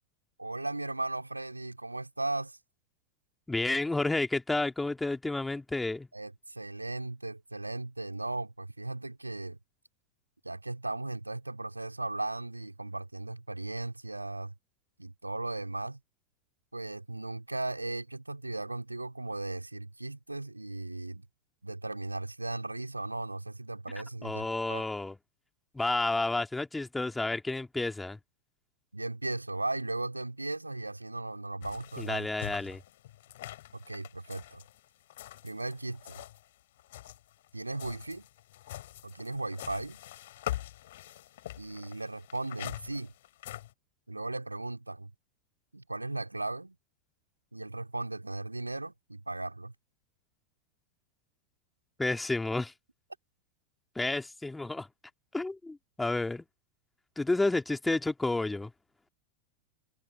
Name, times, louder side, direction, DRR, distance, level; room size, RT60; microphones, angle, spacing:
voice 1, 0.4-2.6 6.1-9.6 10.4-14.5 15.0-16.0 16.7-21.3 21.6-24.9 28.9-32.3 33.7-34.6 35.4-36.2 37.5-38.3 39.0-40.0 41.6-43.1 44.1-45.1 45.7-46.8 47.5-49.7, right 2 dB, 85° right, 3.5 m, -37 dB
voice 2, 3.5-6.1 24.2-25.2 25.7-28.2 32.0-32.8 52.0-52.7 53.9-54.9 55.3-56.4 57.2-58.7, left 2 dB, 5° left, 2.9 m, -30 dB
sound 1, 31.6-36.5 36.8-43.7, left 14 dB, 55° left, 6.4 m, -44 dB
figure-of-eight pair, 90°, 0 cm